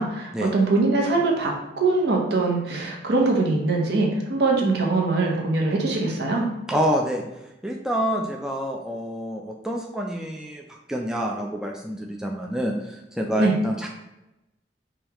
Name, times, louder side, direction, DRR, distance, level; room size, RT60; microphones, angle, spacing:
voice 1, 0.0-6.4 13.4-13.5, right 3 dB, 65° right, 0 dB, 0.8 m, -22 dB
voice 2, 6.7-7.2 7.6-13.9, equal, 5° right, 0 dB, 0.3 m, -27 dB
5.0 x 2.3 x 2.9 m, 0.93 s
head